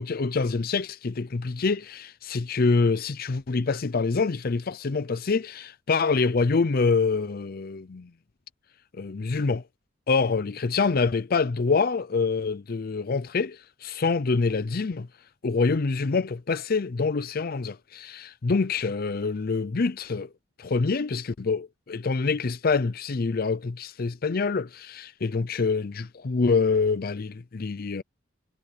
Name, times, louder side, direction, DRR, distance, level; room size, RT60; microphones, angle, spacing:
voice 1, 0.0-8.1 8.9-9.6 10.1-15.1 15.4-20.3 20.6-28.0, left 4 dB, 50° left, 0.6 m, -26 dB
head